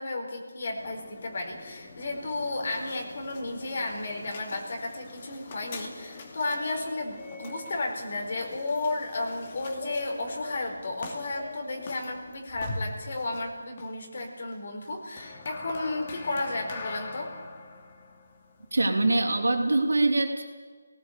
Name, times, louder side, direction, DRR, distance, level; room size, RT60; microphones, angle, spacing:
voice 1, 0.0-17.3, left 2 dB, 50° left, 2 dB, 4.6 m, -33 dB
sound 1, 0.7-19.8, left 3 dB, 35° left, 2.8 m, -43 dB
voice 2, 18.7-20.4, right 2 dB, 70° right, 4 dB, 3.2 m, -23 dB
19.5 x 18.5 x 8.4 m, 1.5 s
figure-of-eight pair, 155°, 0 cm